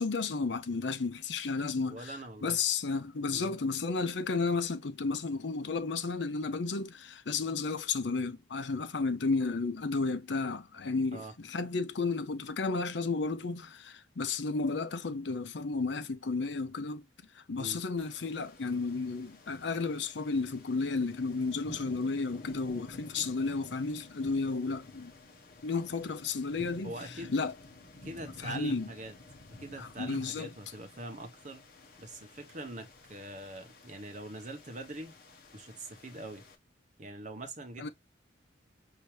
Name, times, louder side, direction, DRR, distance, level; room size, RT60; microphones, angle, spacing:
voice 1, 0.0-2.1 2.4-17.0 17.3-25.1 25.6-26.9 27.3-27.5 28.4-28.9 29.8-30.5 37.8-37.9, left 4 dB, 70° left, 0.6 m, -32 dB
voice 2, 1.9-2.6 3.3-3.5 11.1-11.3 17.6-17.8 26.8-27.3 28.0-29.1 29.6-31.6 32.0-35.1 35.5-36.4 37.0-37.9, right 2 dB, 40° right, 1.0 m, -43 dB
sound 1, 18.0-36.6, left 2 dB, 50° left, 1.2 m, -52 dB
5.8 x 2.8 x 3.2 m
head